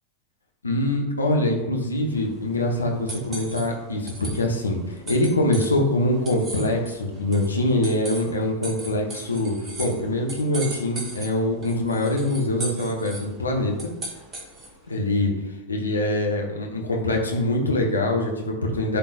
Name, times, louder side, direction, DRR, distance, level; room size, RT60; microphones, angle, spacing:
voice 1, 0.6-13.9 14.9-15.3 15.7-19.0, left 1 dB, 75° left, 0 dB, 1.2 m, -24 dB
sound 1, 2.0-14.9, right 2 dB, 25° right, 1.5 m, -39 dB
11.0 x 3.8 x 2.5 m, 1.0 s
figure-of-eight pair, 90°, 0 cm